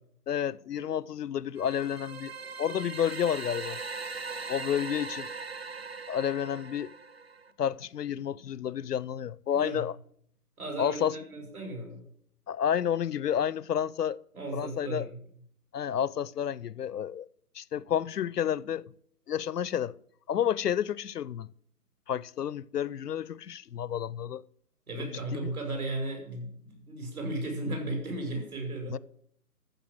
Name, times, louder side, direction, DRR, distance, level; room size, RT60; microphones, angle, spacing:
voice 1, 0.3-2.3 2.6-3.8 4.5-5.3 6.1-6.9 7.6-9.9 10.8-11.1 12.5-14.2 14.5-15.1 15.7-17.3 17.6-18.8 19.3-20.0 20.3-21.5 22.1-24.4 25.0-25.5 28.9-29.0, left 9 dB, 80° left, 0.6 m, -30 dB
sound 1, 1.6-7.5, right 4 dB, 40° right, 0.7 m, -40 dB
voice 2, 9.5-9.9 10.6-12.0 14.3-15.2 24.9-29.0, right 2 dB, 65° right, 5.9 m, -35 dB
14.5 x 6.7 x 7.7 m
hypercardioid pair, 175°, 47 cm